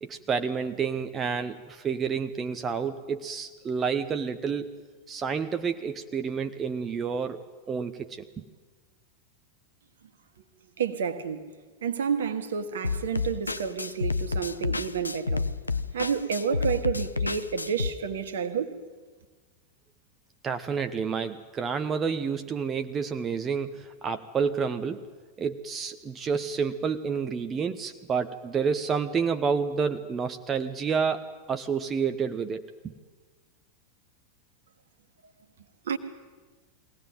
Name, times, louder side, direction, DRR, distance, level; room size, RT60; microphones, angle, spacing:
voice 1, 0.0-4.8 5.1-8.4 20.4-25.0 25.4-32.9, right 6 dB, 25° right, 0.9 m, -29 dB
voice 2, 10.8-11.5 11.8-15.5 15.9-18.8 35.8-36.0, right 7 dB, 65° right, 1.7 m, -30 dB
sound 1, 12.8-17.9, left 4 dB, 80° left, 0.6 m, -30 dB
22.5 x 18.0 x 9.1 m
figure-of-eight pair, 90°, 0 cm